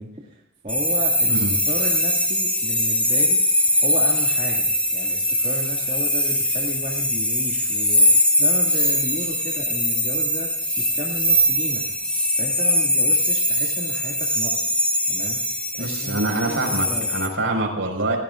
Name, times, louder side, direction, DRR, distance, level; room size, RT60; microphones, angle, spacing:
voice 1, 0.0-3.4 3.8-10.5 10.8-11.9 12.4-14.7 15.1-15.4 15.7-17.1, right 1 dB, 35° right, -2 dB, 2.2 m, -34 dB
sound 1, 0.7-17.3, equal, 5° left, 1.5 m, -21 dB
voice 2, 15.8-18.2, right 2 dB, 80° right, 2 dB, 5.2 m, -25 dB
29.0 x 17.0 x 2.5 m, 0.84 s
head